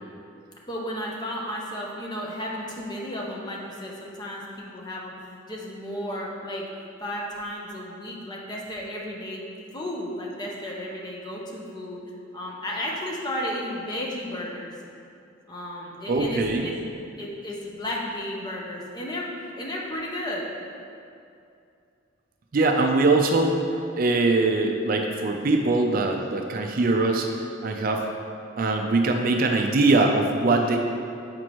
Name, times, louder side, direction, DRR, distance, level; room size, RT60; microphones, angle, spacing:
voice 1, 0.7-5.1 5.5-6.7 7.0-9.4 9.7-12.0 12.3-14.7 15.5-16.8 17.2-19.3 19.6-20.5, left 1 dB, 20° left, -3 dB, 0.8 m, -33 dB
voice 2, 16.1-16.7 22.5-23.6 24.0-27.3 27.6-28.0 28.6-30.8, right 2 dB, 45° right, 3 dB, 0.4 m, -22 dB
7.7 x 5.1 x 3.0 m, 2.5 s
head